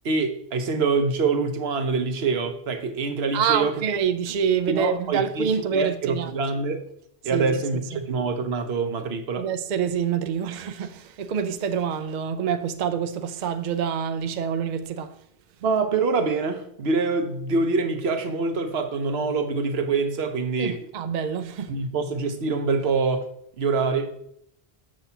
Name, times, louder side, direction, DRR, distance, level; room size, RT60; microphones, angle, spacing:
voice 1, 0.0-3.8 4.7-5.5 5.7-6.8 7.2-9.5 15.6-20.9 21.7-23.3 23.6-24.1, right 4 dB, 70° right, 1.1 m, -25 dB
voice 2, 3.3-6.4 7.3-8.1 9.4-15.1 20.6-21.8, right 7 dB, 55° right, 0.6 m, -26 dB
7.6 x 6.9 x 2.8 m
omnidirectional pair, 1.1 m